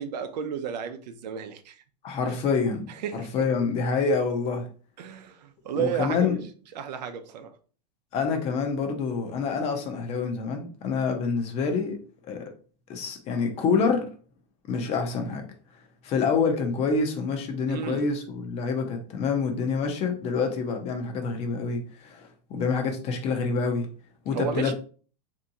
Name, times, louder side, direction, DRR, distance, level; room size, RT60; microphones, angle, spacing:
voice 1, 0.0-1.8 2.2-2.3 3.0-3.4 5.0-6.4 6.8-7.5 17.7-18.1 24.3-24.7, right 7 dB, 80° right, 0.6 m, -32 dB
voice 2, 2.0-4.7 5.7-6.4 8.1-12.0 12.2-12.5 12.9-14.1 14.7-15.5 16.0-23.9 24.2-24.7, left 5 dB, 30° left, 0.6 m, -27 dB
3.4 x 2.7 x 2.7 m
supercardioid pair, 150°, 21 cm